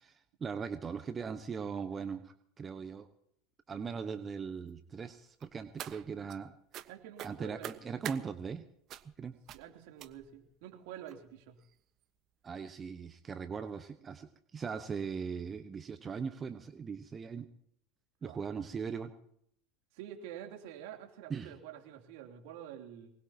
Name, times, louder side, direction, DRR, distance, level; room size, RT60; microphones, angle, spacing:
voice 1, 0.0-3.1 3.7-6.5 7.2-8.6 9.2-9.3 12.4-17.5 18.2-19.1 21.3-21.5, right 6 dB, 30° right, 9 dB, 1.1 m, -39 dB
sound 1, 5.4-6.4 6.7-6.9 7.2-8.2 8.9-9.2 9.5-9.7 10.0-10.4 11.1-11.2 11.6-11.7 12.0-12.1, right 12 dB, 50° right, 1.2 m, -44 dB
voice 2, 6.9-8.0 9.5-11.6 18.2-18.4 19.9-23.1, right 10 dB, 70° right, 3 dB, 3.1 m, -48 dB
24.0 x 20.5 x 2.9 m, 0.70 s
hypercardioid pair, 80°, 0 cm